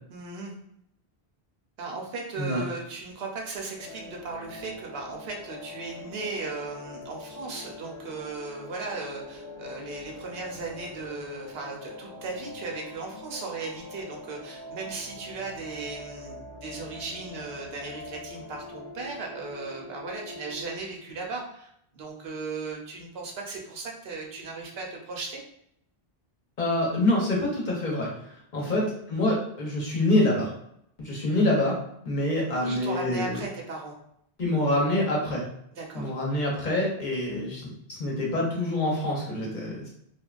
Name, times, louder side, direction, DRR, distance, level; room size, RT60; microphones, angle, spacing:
voice 1, 0.1-0.5 1.8-25.4 28.6-28.8 32.5-33.9 35.7-36.1, right 3 dB, 75° right, 0 dB, 0.8 m, -37 dB
sound 1, 3.8-20.8, left 2 dB, 5° left, 0.5 m, -43 dB
voice 2, 26.6-28.1 28.5-30.5 31.0-31.7 32.1-33.4 34.4-35.4 35.9-39.9, left 1 dB, 50° left, -4 dB, 0.9 m, -26 dB
3.3 x 2.1 x 2.4 m, 0.72 s
omnidirectional pair, 1.0 m